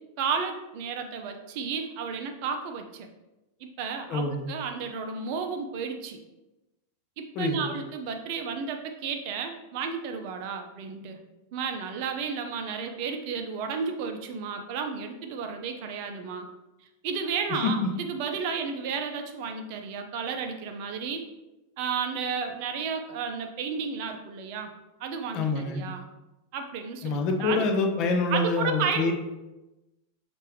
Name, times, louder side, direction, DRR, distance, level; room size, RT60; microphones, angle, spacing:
voice 1, 0.2-3.1 3.6-6.2 7.2-11.2 11.5-16.5 17.0-21.2 21.8-24.7 25.0-26.0 26.5-27.7 28.3-29.1, right 5 dB, 45° right, 5 dB, 0.5 m, -32 dB
voice 2, 4.1-4.5 7.3-7.7 17.5-17.9 25.3-25.9 27.0-29.1, left 3 dB, 40° left, 5 dB, 0.5 m, -26 dB
5.4 x 2.5 x 3.2 m, 1.0 s
figure-of-eight pair, 90°, 0 cm